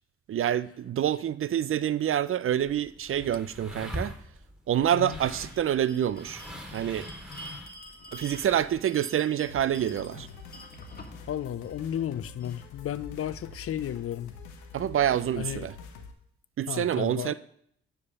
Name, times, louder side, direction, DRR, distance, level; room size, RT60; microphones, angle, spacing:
voice 1, 0.3-4.1 4.7-6.4 6.7-7.1 8.1-10.3 14.7-15.7 16.6-17.3, right 10 dB, 45° right, 0.5 m, -27 dB
sound 1, 2.5-8.8, equal, 5° right, 2.4 m, -42 dB
Bell, 5.4-12.6, left 1 dB, 30° left, 1.9 m, -48 dB
sound 2, 9.5-16.1, left 4 dB, 80° left, 1.0 m, -46 dB
voice 2, 11.3-14.3 15.4-15.7 16.7-17.3, left 11 dB, 50° left, 0.5 m, -33 dB
9.6 x 3.6 x 6.5 m
hypercardioid pair, 45°, 30 cm